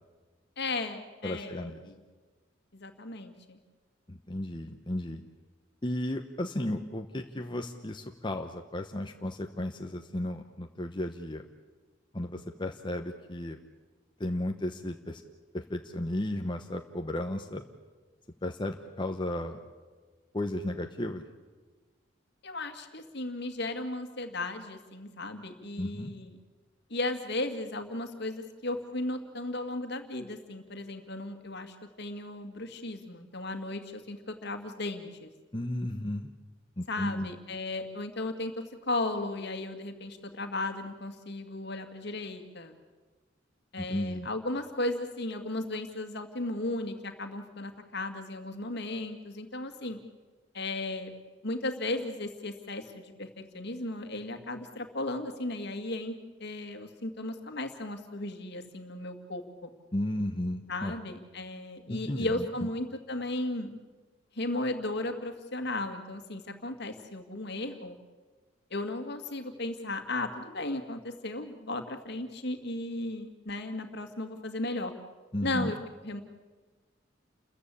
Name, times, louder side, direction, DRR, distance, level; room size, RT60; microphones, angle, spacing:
voice 1, 0.6-2.0 2.7-3.6 22.4-26.3 26.9-35.3 36.9-38.5 38.8-42.7 43.7-50.0 50.5-51.1 51.4-56.1 56.4-59.7 60.7-63.8 64.4-68.0 68.7-74.9 75.4-75.8 76.0-76.2, left 2 dB, 60° left, 7 dB, 2.2 m, -35 dB
voice 2, 1.2-1.8 4.1-5.2 5.8-11.4 12.1-13.6 14.2-15.2 15.5-17.6 18.4-19.6 20.3-21.2 25.8-26.1 35.5-36.3 36.8-37.3 43.8-44.3 59.9-61.0 61.9-62.5 75.3-75.7, left 1 dB, 25° left, 4 dB, 1.0 m, -34 dB
29.5 x 14.5 x 8.5 m, 1.3 s
head